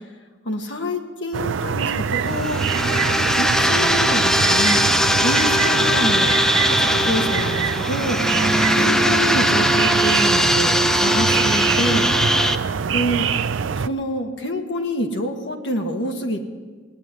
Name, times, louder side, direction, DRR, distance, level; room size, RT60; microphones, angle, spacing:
voice 1, 0.4-2.6 3.4-4.9 5.2-6.4 6.7-8.2 8.7-12.1 12.9-13.3 13.8-16.4, equal, 70° left, 4 dB, 1.6 m, -26 dB
sound 1, 1.3-13.9, right 6 dB, 85° right, 0.4 m, -25 dB
sound 2, 2.3-12.5, equal, 5° left, 0.4 m, -19 dB
18.0 x 9.4 x 8.2 m, 1.5 s
head